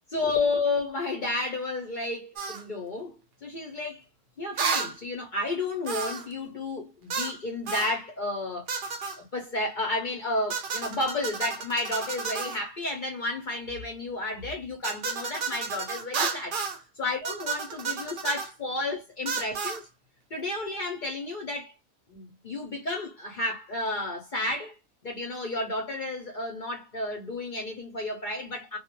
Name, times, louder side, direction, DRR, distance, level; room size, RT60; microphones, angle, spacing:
voice 1, 0.1-4.1 4.4-8.7 9.2-16.6 17.0-19.8 20.3-21.7 22.1-24.8 25.0-28.8, left 2 dB, 45° left, 0.6 m, -32 dB
sound 1, 2.4-2.6 4.6-4.9 5.9-6.3 7.1-7.4 7.7-7.9 8.7-9.2 10.5-12.6 14.8-16.8 17.2-18.5 19.3-19.8, right 5 dB, 65° right, 0.5 m, -32 dB
2.3 x 2.1 x 2.8 m
omnidirectional pair, 1.5 m